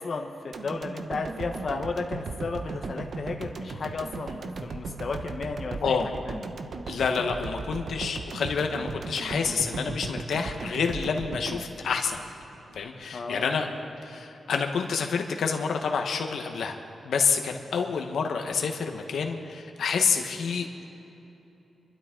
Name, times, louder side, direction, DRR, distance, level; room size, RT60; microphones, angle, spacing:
voice 1, 0.0-6.0 6.3-6.4 13.1-13.6, left 4 dB, 45° left, 2 dB, 1.1 m, -34 dB
sound 1, 0.5-12.8 13.1-13.2, right 4 dB, 55° right, 0.8 m, -37 dB
voice 2, 6.9-12.2 12.7-13.7 14.0-16.8 17.0-20.9, left 5 dB, 80° left, 4 dB, 1.2 m, -28 dB
27.0 x 12.5 x 3.8 m, 3.0 s
wide cardioid pair, 145°, 0 cm